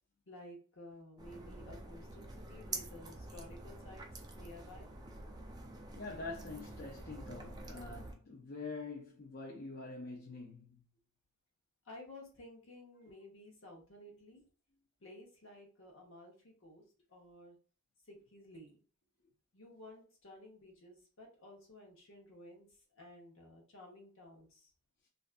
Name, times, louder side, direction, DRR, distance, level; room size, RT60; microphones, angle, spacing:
voice 1, 0.3-4.0 4.3-4.9 11.9-14.4 15.0-16.8 17.1-17.6 18.1-18.7 19.5-22.7 23.0-24.7, left 1 dB, 65° left, 0.9 m, -54 dB
sound 1, 1.2-8.1, right 2 dB, 20° right, 0.3 m, -47 dB
voice 2, 5.9-10.8, left 3 dB, 45° left, 0.5 m, -45 dB
2.5 x 2.3 x 2.4 m
head